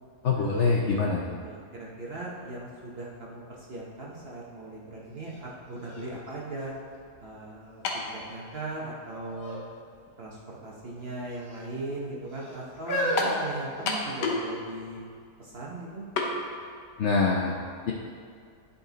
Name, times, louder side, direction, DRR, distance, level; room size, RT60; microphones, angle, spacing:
voice 1, 0.2-1.4 17.0-17.5 17.9-18.0, left 4 dB, 70° left, -1 dB, 0.7 m, -24 dB
voice 2, 1.4-6.7 7.2-7.8 8.3-9.6 10.2-15.0 15.4-16.0, right 2 dB, 45° right, -4 dB, 0.9 m, -39 dB
sound 1, 5.3-5.4 5.8-7.4 7.9-8.4 9.3-9.6 9.9-10.1 11.0-11.6 12.3-14.4 15.1-15.2, equal, 50° left, 2.1 m, -34 dB
sound 2, 7.8-8.1 9.0-9.1 13.2-13.4 13.9-14.5 14.8-14.9 16.2-16.3, left 4 dB, 85° left, 1.5 m, -28 dB
10.5 x 4.2 x 3.9 m, 2.2 s
omnidirectional pair, 1.8 m